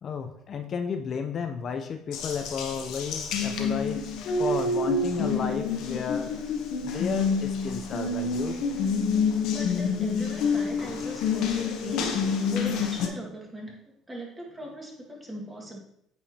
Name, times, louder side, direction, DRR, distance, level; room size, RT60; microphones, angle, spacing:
voice 1, 0.0-4.1 4.4-6.3 6.8-8.6, left 6 dB, 45° left, 7 dB, 0.5 m, -33 dB
Water tap faucet, 2.1-13.1, left 4 dB, 70° left, 0.9 m, -28 dB
voice 2, 9.5-15.8, equal, 15° right, -1 dB, 1.8 m, -39 dB
8.5 x 4.6 x 2.8 m, 0.76 s
supercardioid pair, 90°, 0 cm